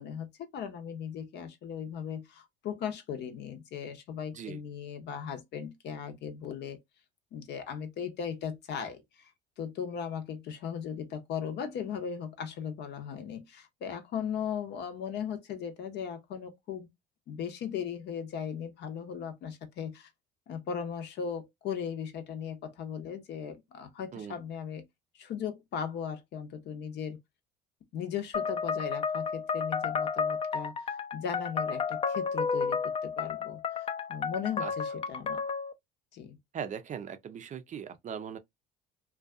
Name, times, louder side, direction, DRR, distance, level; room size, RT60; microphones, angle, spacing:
voice 1, 0.0-6.8 7.3-9.3 9.6-16.9 17.3-20.1 20.5-24.9 25.1-27.2 27.9-35.4 36.1-36.4, left 7 dB, 65° left, 0.8 m, -37 dB
sound 1, 28.3-35.7, left 5 dB, 30° left, 0.5 m, -32 dB
voice 2, 36.5-38.4, right 8 dB, 40° right, 0.4 m, -39 dB
2.5 x 2.3 x 2.3 m
supercardioid pair, 75°, 19 cm